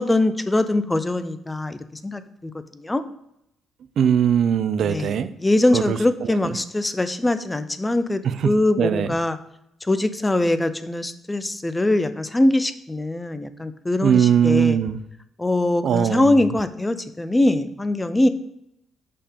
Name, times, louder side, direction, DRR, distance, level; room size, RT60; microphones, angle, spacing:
voice 1, 0.0-3.0 4.8-5.1 5.4-9.4 9.8-14.8 15.4-18.3, left 1 dB, 15° left, 12 dB, 0.6 m, -22 dB
voice 2, 4.0-5.3 5.7-6.5 8.2-8.5 8.8-9.1 14.0-15.0 15.8-16.5, right 8 dB, 65° right, 12 dB, 0.5 m, -20 dB
6.7 x 5.6 x 3.6 m, 0.79 s
cardioid pair, 90°, 0 cm